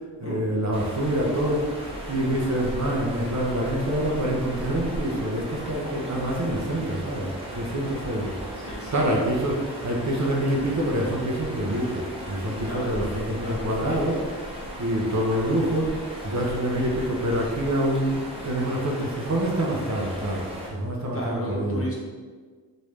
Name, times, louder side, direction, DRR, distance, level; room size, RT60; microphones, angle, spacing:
voice 1, 0.2-14.2 14.8-21.8, right 1 dB, 40° right, -2 dB, 0.6 m, -26 dB
sound 1, 0.7-20.7, equal, 15° right, 0.9 m, -37 dB
voice 2, 8.5-9.1 12.7-13.0 13.4-13.9 19.5-19.6 21.1-21.9, right 1 dB, 30° left, -4 dB, 0.9 m, -34 dB
3.1 x 2.6 x 3.3 m, 1.5 s
wide cardioid pair, 65°, 42 cm